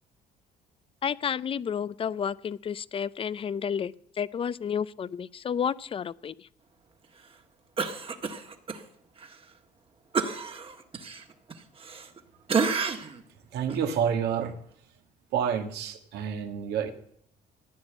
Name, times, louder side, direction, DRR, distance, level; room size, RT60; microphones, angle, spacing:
voice 1, 1.0-6.5, left 7 dB, 35° left, 19 dB, 0.5 m, -31 dB
Cough, 7.8-8.8 9.2-9.3 10.1-12.2 12.5-13.2 13.7-13.8, right 5 dB, 35° right, 1.6 m, -30 dB
voice 2, 13.5-14.9 15.3-16.9, right 8 dB, 75° right, 6 dB, 1.8 m, -29 dB
15.0 x 9.8 x 7.9 m, 0.66 s
cardioid pair, 110°, 17 cm